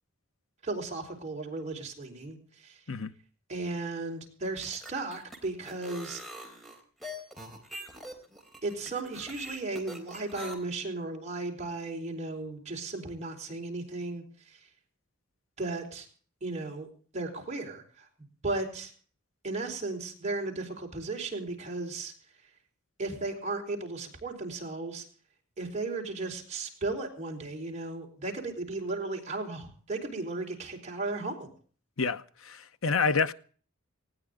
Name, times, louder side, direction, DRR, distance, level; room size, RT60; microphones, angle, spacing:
voice 1, 0.6-2.8 3.5-6.2 8.6-14.7 15.6-16.1 16.4-16.9 17.1-18.1 18.4-18.9 19.4-22.1 23.0-25.0 25.6-31.5, right 3 dB, 35° right, 4.3 m, -35 dB
sound 1, 4.5-10.5, equal, ahead, 3.9 m, -43 dB
voice 2, 32.0-33.3, left 5 dB, 90° left, 0.9 m, -28 dB
19.5 x 17.0 x 3.8 m
head